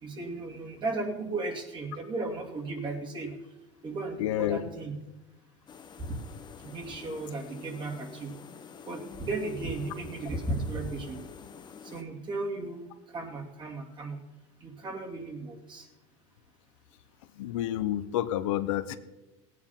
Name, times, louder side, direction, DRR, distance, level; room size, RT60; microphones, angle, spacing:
voice 1, 0.0-3.3 3.8-4.9 6.1-6.2 6.6-8.3 8.9-11.2 11.8-14.2 14.6-15.9, right 2 dB, 30° right, 1 dB, 2.7 m, -35 dB
voice 2, 4.2-4.6 17.4-19.0, left 13 dB, 80° left, 11 dB, 0.9 m, -29 dB
sound 1, 5.7-12.0, left 7 dB, 30° left, 1.2 m, -48 dB
17.0 x 9.5 x 5.7 m, 1.1 s
supercardioid pair, 120°, 16 cm